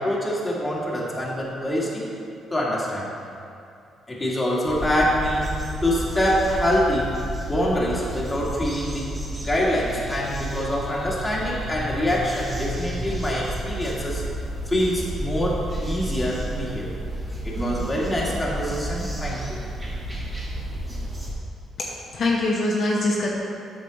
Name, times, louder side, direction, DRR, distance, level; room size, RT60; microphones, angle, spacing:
voice 1, 0.0-2.1 2.5-3.1 4.1-7.1 7.5-9.1 9.4-14.2 14.7-17.0 17.4-19.6, equal, 15° left, -5 dB, 2.1 m, -25 dB
sound 1, 4.7-21.3, right 1 dB, 20° right, 1.8 m, -31 dB
voice 2, 21.8-23.3, left 2 dB, 60° left, -3 dB, 1.0 m, -23 dB
8.5 x 6.4 x 4.0 m, 2.5 s
cardioid pair, 90°, 0 cm